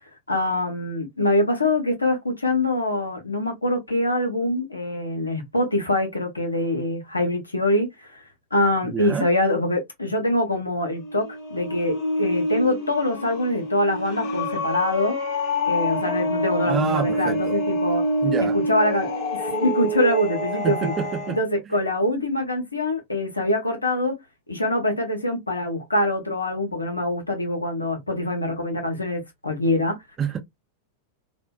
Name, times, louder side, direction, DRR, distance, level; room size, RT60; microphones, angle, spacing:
voice 1, 0.3-8.2 8.5-15.2 15.7-18.0 18.5-20.9 21.3-24.2 24.5-30.0, left 1 dB, 80° left, 0.7 m, -24 dB
voice 2, 8.8-9.3 16.7-17.6 18.2-18.6 20.6-21.4 30.2-30.4, right 7 dB, 25° right, 0.7 m, -27 dB
sound 1, 10.9-21.4, left 1 dB, 45° left, 0.7 m, -26 dB
2.6 x 2.1 x 2.2 m
figure-of-eight pair, 90°, 0 cm